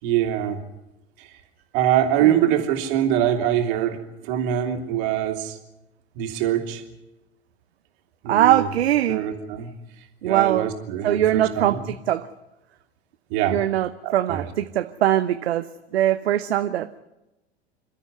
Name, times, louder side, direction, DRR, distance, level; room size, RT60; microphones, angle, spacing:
voice 1, 0.0-0.6 1.2-1.3 1.7-5.6 6.1-6.8 8.2-8.7 9.1-9.7 10.2-11.8 13.3-13.6 14.0-14.4, right 11 dB, 55° right, 4 dB, 3.2 m, -23 dB
voice 2, 2.2-2.5 8.3-9.2 10.2-10.7 11.0-12.3 13.4-15.7 15.9-17.0, right 12 dB, 70° right, 11 dB, 0.9 m, -22 dB
27.0 x 13.5 x 9.7 m, 0.98 s
figure-of-eight pair, 85°, 33 cm